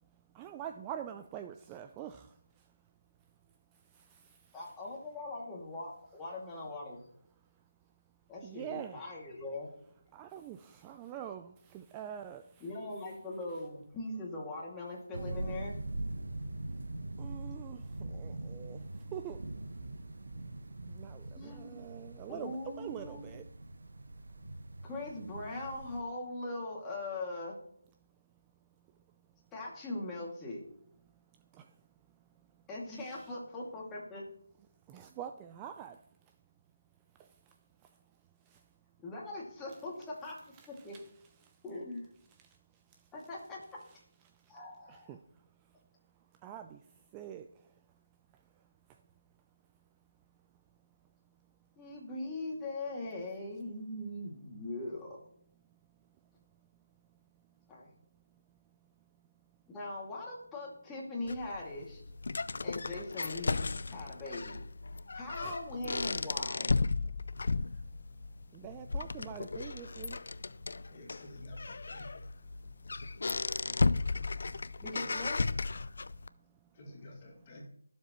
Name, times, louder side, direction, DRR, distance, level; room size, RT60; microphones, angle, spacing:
voice 1, 0.0-2.8 3.2-3.3 3.7-4.7 7.5-7.7 8.4-9.1 10.1-12.7 16.2-16.3 16.7-16.8 17.2-20.0 20.4-20.5 20.9-23.4 24.0-24.1 28.8-29.2 31.0-32.7 32.9-33.3 34.9-36.4 37.1-38.7 40.5-41.1 41.4-41.6 42.3-43.1 43.9-44.0 44.2-44.6 44.9-45.8 46.1-49.0 49.3-49.4 50.4-50.6 51.0-51.7 55.7-59.3 65.4-65.6 66.2-66.3 67.0-71.0 73.0-73.6 75.9-76.8, right 9 dB, 15° right, 7 dB, 0.4 m, -48 dB
voice 2, 4.5-7.0 8.3-9.7 12.6-15.7 18.0-18.2 21.4-21.8 22.3-23.3 24.8-27.6 29.5-30.6 32.7-34.2 39.0-40.4 40.7-40.9 41.6-42.1 43.1-43.6 44.5-45.2 51.8-55.2 57.7-57.9 59.7-62.0 62.6-64.6 65.1-66.7 74.8-75.4, left 2 dB, 10° left, -4 dB, 2.3 m, -41 dB
sound 1, 15.1-26.0, right 2 dB, 65° right, 1.3 m, -42 dB
sound 2, 61.3-76.3, left 3 dB, 60° left, 0.4 m, -35 dB
voice 3, 70.9-72.2 76.7-77.7, left 1 dB, 25° left, 1 dB, 2.1 m, -50 dB
21.5 x 7.3 x 3.0 m, 0.67 s
figure-of-eight pair, 165°, 0 cm